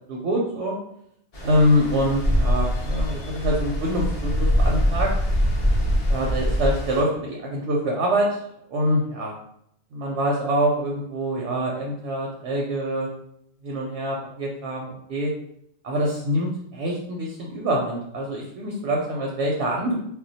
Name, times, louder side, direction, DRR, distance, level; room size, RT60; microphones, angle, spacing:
voice 1, 0.1-0.8 1.4-5.1 6.1-8.4 8.7-9.3 9.9-13.1 13.6-15.3 15.8-20.0, equal, 70° right, -2 dB, 0.8 m, -25 dB
Stream, 1.3-7.0, equal, 55° left, 0.4 m, -23 dB
2.2 x 2.2 x 3.9 m, 0.74 s
omnidirectional pair, 1.3 m